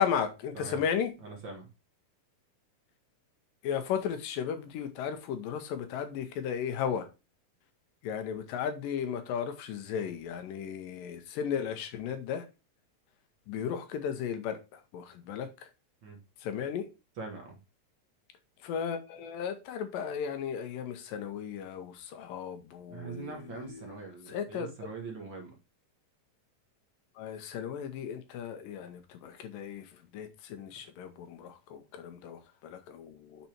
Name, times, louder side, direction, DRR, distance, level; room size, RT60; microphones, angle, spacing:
voice 1, 0.0-1.1 3.6-7.1 8.0-12.5 13.5-15.7 16.4-16.9 18.6-24.0 24.3-24.7 27.2-33.5, left 8 dB, 85° left, 2.6 m, -35 dB
voice 2, 1.2-1.7 16.0-16.2 17.2-17.6 22.9-25.6, right 4 dB, 50° right, 1.6 m, -42 dB
6.8 x 4.2 x 4.4 m
omnidirectional pair, 3.8 m